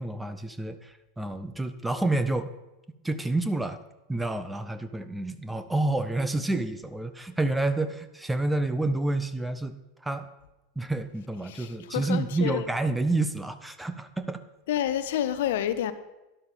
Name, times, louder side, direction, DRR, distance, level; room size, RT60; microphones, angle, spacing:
voice 1, 0.0-2.5 3.0-3.8 4.1-9.8 10.0-10.3 10.8-14.4, right 2 dB, 5° right, 1.0 m, -29 dB
voice 2, 11.4-12.7 14.7-15.9, left 11 dB, 65° left, 0.9 m, -29 dB
12.5 x 11.0 x 5.1 m
figure-of-eight pair, 85°, 0 cm